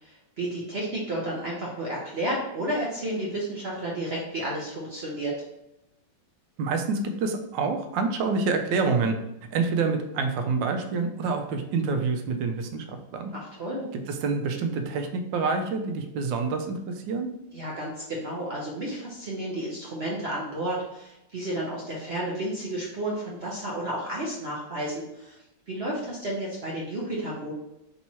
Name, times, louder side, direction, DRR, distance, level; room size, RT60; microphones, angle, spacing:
voice 1, 0.0-5.3 13.3-13.8 17.5-25.4 25.7-27.5, right 1 dB, 60° right, -4 dB, 0.6 m, -32 dB
voice 2, 6.6-9.2 9.5-13.3 14.1-16.8 17.1-17.3, right 4 dB, 80° right, 6 dB, 1.3 m, -27 dB
3.5 x 2.9 x 4.1 m, 0.88 s
omnidirectional pair, 2.0 m